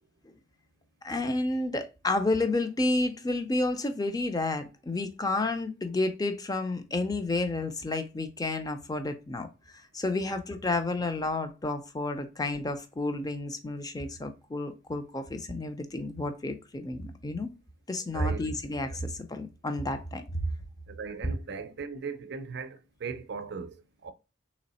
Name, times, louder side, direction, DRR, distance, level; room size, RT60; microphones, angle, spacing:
voice 1, 1.0-9.5 9.9-17.5 17.9-20.4, left 2 dB, 20° left, 0.5 m, -31 dB
voice 2, 18.1-18.4 18.9-19.0 20.9-24.1, right 5 dB, 60° right, 0.5 m, -39 dB
3.3 x 3.1 x 4.1 m
head